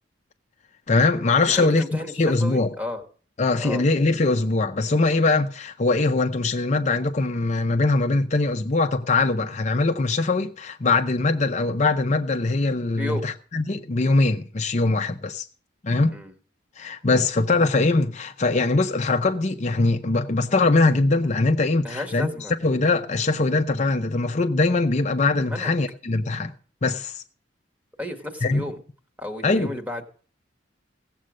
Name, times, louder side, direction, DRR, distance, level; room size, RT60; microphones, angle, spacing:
voice 1, 0.9-2.7 3.4-15.5 15.8-16.2 16.8-22.3 22.6-26.5 26.8-27.2 28.4-28.6 29.4-29.7, left 3 dB, 35° left, 0.6 m, -22 dB
voice 2, 1.5-3.0 3.6-3.8 12.9-13.2 16.1-16.3 21.8-22.6 25.4-25.7 28.0-28.8 29.2-30.0, left 1 dB, 10° right, 1.6 m, -32 dB
16.0 x 7.6 x 6.3 m
head